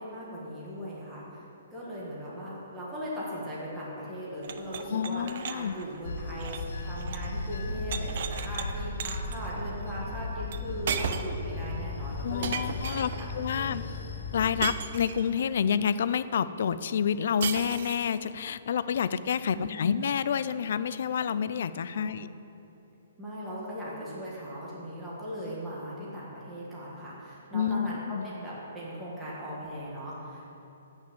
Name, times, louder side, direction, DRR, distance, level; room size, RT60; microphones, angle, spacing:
voice 1, 0.0-1.4 1.7-12.6 12.9-13.3 13.5-13.8 19.5-19.9 21.9-22.2 23.2-30.5, equal, 5° right, -8 dB, 1.5 m, -39 dB
sound 1, 4.4-7.3 7.6-8.7 9.0-9.4 10.5-10.6 10.9-11.4 12.4-13.3 14.6-15.4 17.4-18.2, right 7 dB, 40° right, 0.5 m, -36 dB
voice 2, 4.9-5.7 12.2-13.8 14.3-22.3 27.5-28.2, left 7 dB, 50° left, 14 dB, 0.3 m, -29 dB
Bell / Train, 6.0-14.6, left 2 dB, 80° left, 1.4 m, -36 dB
8.5 x 6.1 x 7.9 m, 2.9 s
hypercardioid pair, 175°, 0 cm